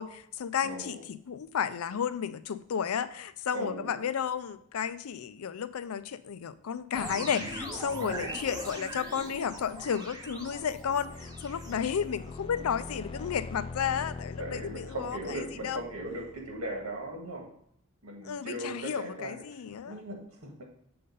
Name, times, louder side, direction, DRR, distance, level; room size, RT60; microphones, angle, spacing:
voice 1, 0.0-15.8 18.2-20.0, left 7 dB, 90° left, 14 dB, 0.4 m, -33 dB
voice 2, 0.6-1.0 3.5-4.0 8.0-8.4 11.7-12.1 14.4-17.4 18.0-19.4 19.9-20.5, right 1 dB, 85° right, 1 dB, 1.8 m, -38 dB
sound 1, 6.9-12.4, right 1 dB, 20° right, 1.0 m, -41 dB
sound 2, 9.6-17.2, left 3 dB, 25° left, 0.3 m, -44 dB
7.7 x 3.9 x 5.2 m, 0.66 s
head